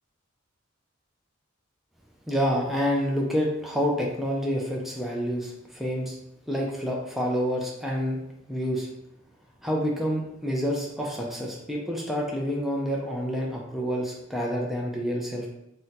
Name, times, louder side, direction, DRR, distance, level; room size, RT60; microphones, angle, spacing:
voice 1, 2.3-6.2 6.5-8.2 8.5-8.9 9.6-15.5, equal, ahead, -2 dB, 0.4 m, -28 dB
2.7 x 2.1 x 3.9 m, 0.83 s
head